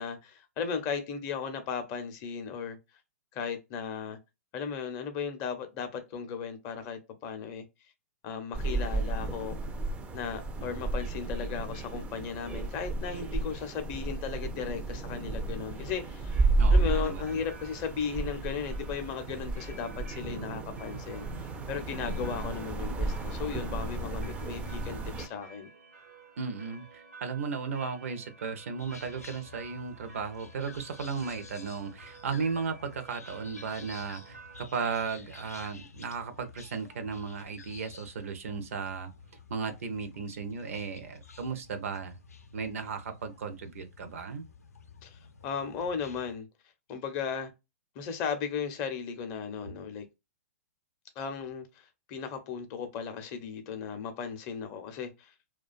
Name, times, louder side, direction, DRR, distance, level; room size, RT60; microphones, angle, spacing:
voice 1, 0.0-2.8 3.3-4.2 4.5-7.6 8.2-9.6 10.1-25.7 45.0-46.5 46.9-47.5 48.0-50.1 51.2-55.3, left 6 dB, 35° left, 0.6 m, -36 dB
sound 1, 8.5-25.3, right 2 dB, 15° right, 0.4 m, -32 dB
voice 2, 16.6-17.4 26.4-39.1 39.5-42.1 42.5-44.5, right 5 dB, 65° right, 0.6 m, -35 dB
sound 2, 16.9-34.6, right 4 dB, 90° right, 0.9 m, -53 dB
sound 3, 28.8-46.4, left 5 dB, 80° left, 0.5 m, -52 dB
2.4 x 2.2 x 2.3 m
figure-of-eight pair, 115°, 8 cm